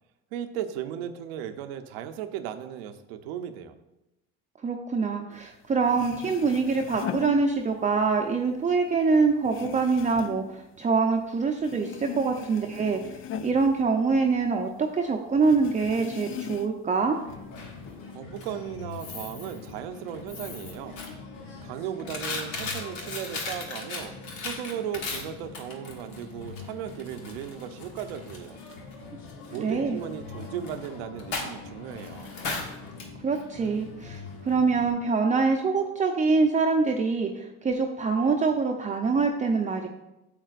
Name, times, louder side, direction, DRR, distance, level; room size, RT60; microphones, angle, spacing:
voice 1, 0.3-3.7 18.1-21.0 21.6-24.2 24.4-28.6 29.5-32.3, right 9 dB, 90° right, 9 dB, 0.7 m, -36 dB
voice 2, 4.6-17.2 29.6-30.0 33.2-39.9, right 4 dB, 25° right, 2 dB, 0.7 m, -25 dB
sound 1, 5.5-5.6 5.8-8.0 8.4-11.3 11.6-14.6 14.9-15.0 15.4-16.9 17.3-18.1, left 10 dB, 45° left, 0.5 m, -39 dB
Coin (dropping), 17.1-34.9, left 3 dB, 80° left, 1.4 m, -39 dB
9.0 x 7.3 x 2.5 m, 0.95 s
supercardioid pair, 80°, 30 cm